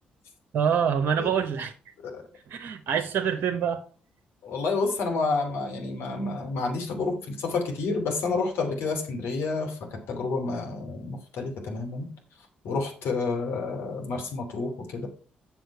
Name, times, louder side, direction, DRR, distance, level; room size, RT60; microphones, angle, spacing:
voice 1, 0.5-1.7 2.5-3.8, right 7 dB, 60° right, 0.9 m, -25 dB
voice 2, 4.4-12.1 12.6-15.1, left 3 dB, 65° left, 2.8 m, -29 dB
7.9 x 7.2 x 4.6 m
hypercardioid pair, 40°, 4 cm